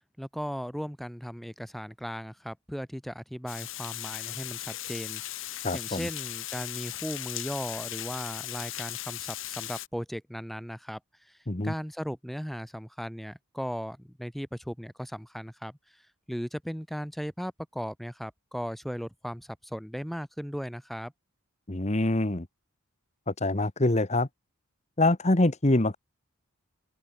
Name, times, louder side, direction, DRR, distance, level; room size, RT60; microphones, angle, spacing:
voice 1, 0.2-11.0 11.3-11.4 11.6-15.8 16.3-21.1, equal, ahead, 3.0 m, -37 dB
Water, 3.5-9.9, left 14 dB, 60° left, 1.6 m, -37 dB
voice 2, 5.6-6.1 11.5-11.7 21.7-22.5 23.3-24.3 25.0-26.0, left 2 dB, 30° left, 1.2 m, -25 dB
open air
head